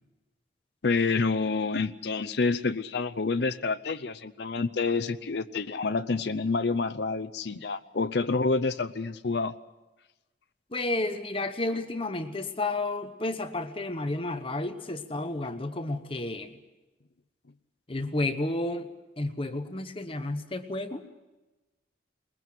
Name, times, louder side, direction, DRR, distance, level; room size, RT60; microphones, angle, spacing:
voice 1, 0.8-9.5, left 4 dB, 60° left, 11 dB, 0.6 m, -28 dB
voice 2, 10.7-16.5 17.9-18.9 19.2-21.0, left 2 dB, 30° left, 8 dB, 1.0 m, -31 dB
21.5 x 21.0 x 7.6 m, 1.1 s
head